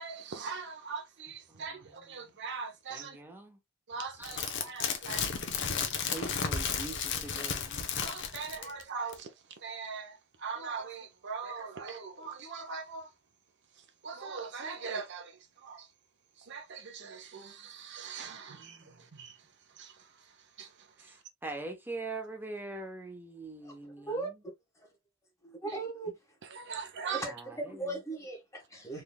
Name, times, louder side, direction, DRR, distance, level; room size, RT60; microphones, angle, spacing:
voice 1, 0.0-3.2 3.9-5.3 8.0-9.3 9.6-13.1 14.0-15.9 16.4-19.4 19.8-20.1 20.6-21.2 26.5-27.2, right 5 dB, 55° right, 0.7 m, -41 dB
voice 2, 1.5-2.3 2.9-3.6 4.2-4.3 5.1-5.2 6.1-7.9 18.2-18.9 21.0-24.3 27.3-28.0, right 2 dB, 10° right, 0.8 m, -43 dB
sound 1, 4.2-8.8 9.1-9.2, left 6 dB, 60° left, 0.8 m, -33 dB
voice 3, 23.6-24.3 24.8-24.9 25.4-26.1 27.1-29.0, right 2 dB, 15° left, 1.3 m, -38 dB
3.9 x 3.3 x 2.2 m
head